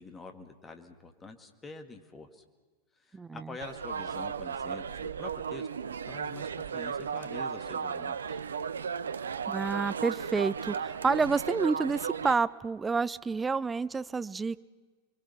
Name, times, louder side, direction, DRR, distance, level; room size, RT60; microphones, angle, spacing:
voice 1, 0.0-2.4 3.0-5.7 6.1-8.4, left 3 dB, 15° left, 6 dB, 2.0 m, -46 dB
voice 2, 3.1-3.5 9.5-14.6, right 4 dB, 15° right, 16 dB, 0.6 m, -29 dB
sound 1, 3.6-12.3, right 6 dB, 70° right, 0.7 m, -35 dB
29.5 x 23.0 x 5.8 m, 1.3 s
figure-of-eight pair, 90°, 0 cm